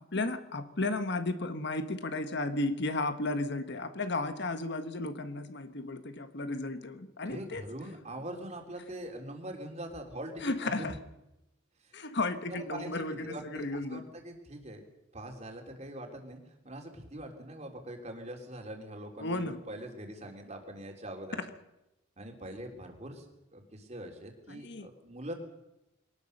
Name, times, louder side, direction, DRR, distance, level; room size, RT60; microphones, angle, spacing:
voice 1, 0.0-7.6 10.4-10.9 11.9-14.0 19.2-19.6 24.5-24.9, left 2 dB, 60° left, 9 dB, 1.4 m, -34 dB
voice 2, 7.3-10.9 11.8-12.0 12.5-14.8 15.1-16.4 16.6-21.4 22.2-23.3 23.5-25.3, right 1 dB, 35° right, 3 dB, 3.5 m, -43 dB
23.0 x 19.0 x 6.6 m, 0.92 s
head